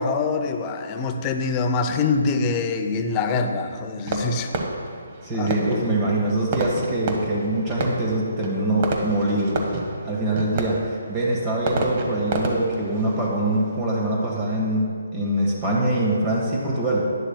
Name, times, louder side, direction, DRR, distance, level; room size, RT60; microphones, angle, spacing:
voice 1, 0.0-4.5 5.4-5.5, left 4 dB, 25° left, 6 dB, 0.6 m, -24 dB
Fireworks, 4.1-14.6, right 2 dB, 35° right, 1.0 m, -31 dB
voice 2, 5.2-9.6 10.0-14.8 15.1-17.0, right 1 dB, 20° right, -4 dB, 1.4 m, -23 dB
11.5 x 10.0 x 2.2 m, 2.1 s
figure-of-eight pair, 145°, 0 cm